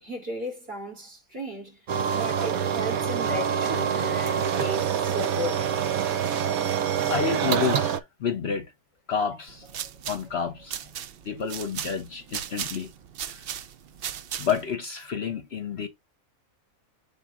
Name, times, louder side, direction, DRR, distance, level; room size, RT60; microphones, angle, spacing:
voice 1, 0.0-1.8 2.1-5.7, equal, 45° right, 3.5 m, -35 dB
sound 1, 1.9-8.0, right 8 dB, 85° right, 1.2 m, -26 dB
voice 2, 7.1-8.7 9.1-9.7 10.1-10.8 11.2-12.9 13.3-13.4 14.4-15.9, left 6 dB, 55° left, 0.9 m, -29 dB
sound 2, 9.5-14.8, right 9 dB, 65° right, 0.6 m, -37 dB
7.2 x 4.1 x 3.6 m
omnidirectional pair, 1.5 m